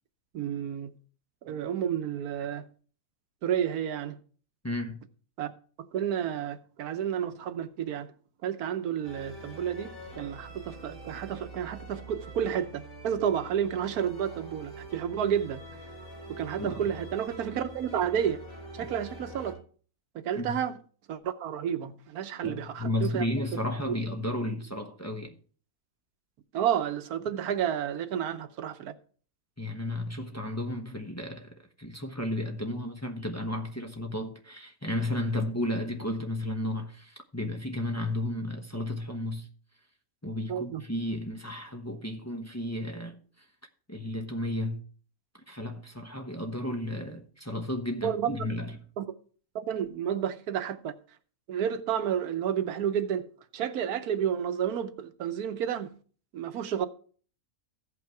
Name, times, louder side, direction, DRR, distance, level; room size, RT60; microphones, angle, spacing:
voice 1, 0.3-1.0 1.4-2.7 3.4-4.2 5.4-5.5 5.9-8.1 8.4-15.6 16.3-18.4 18.7-19.6 20.1-20.7 21.1-23.2 23.9-24.0 26.5-28.9 40.5-40.8 48.0-48.3 49.0-49.1 49.5-51.0 51.5-53.3 53.5-55.9 56.3-56.9, right 9 dB, 90° right, 1.3 m, -31 dB
voice 2, 4.6-5.0 16.6-16.8 20.3-20.6 22.4-25.4 29.6-39.5 40.2-43.2 43.9-44.8 45.5-48.8, left 1 dB, 10° left, 0.9 m, -33 dB
sound 1, 9.0-19.5, right 1 dB, 65° left, 3.5 m, -45 dB
15.0 x 5.7 x 4.5 m
omnidirectional pair, 1.5 m